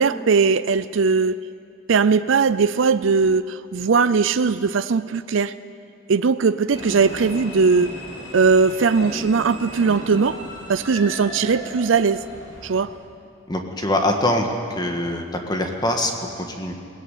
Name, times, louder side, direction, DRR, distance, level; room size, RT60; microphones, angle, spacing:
voice 1, 0.0-1.3 1.9-5.5 6.1-7.9 8.3-10.4 10.7-12.2 12.6-12.9, right 5 dB, 70° right, 13 dB, 0.5 m, -19 dB
sound 1, 6.7-13.0, equal, 65° left, 6.6 m, -36 dB
voice 2, 13.5-14.5 14.8-16.1 16.5-16.7, left 1 dB, 20° left, 3 dB, 1.7 m, -23 dB
21.5 x 18.5 x 9.3 m, 2.5 s
head